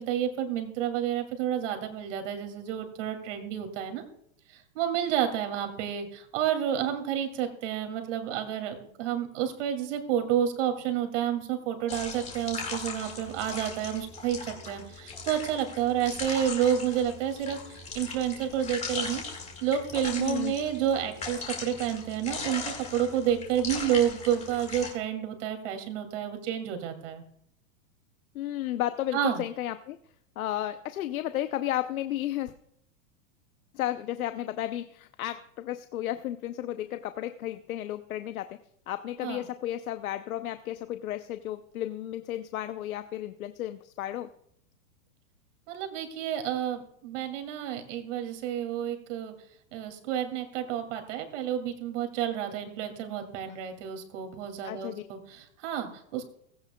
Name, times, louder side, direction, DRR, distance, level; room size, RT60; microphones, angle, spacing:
voice 1, 0.0-4.0 4.7-19.2 19.6-27.2 29.1-29.4 39.2-39.4 45.7-49.3 49.7-56.2, right 10 dB, 60° right, 5 dB, 2.7 m, -30 dB
sound 1, 11.9-24.9, left 4 dB, 15° left, 2.1 m, -39 dB
voice 2, 20.2-20.5 28.3-30.0 30.4-32.5 33.7-38.6 38.9-44.3 54.6-55.0, left 13 dB, 85° left, 10 dB, 0.8 m, -33 dB
16.5 x 16.0 x 2.3 m, 0.73 s
supercardioid pair, 150°, 41 cm